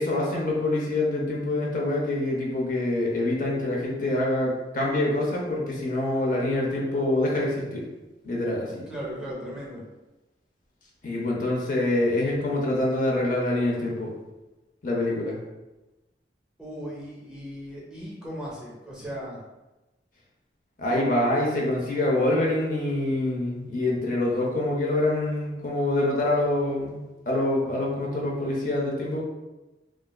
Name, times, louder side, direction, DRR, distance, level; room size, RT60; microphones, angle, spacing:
voice 1, 0.0-7.8 8.2-8.9 11.0-14.1 14.8-15.3 20.8-29.2, left 1 dB, 50° left, -3 dB, 0.6 m, -25 dB
voice 2, 8.9-9.8 16.6-19.4, equal, 5° right, -5 dB, 0.6 m, -37 dB
3.1 x 2.3 x 2.2 m, 1.1 s
head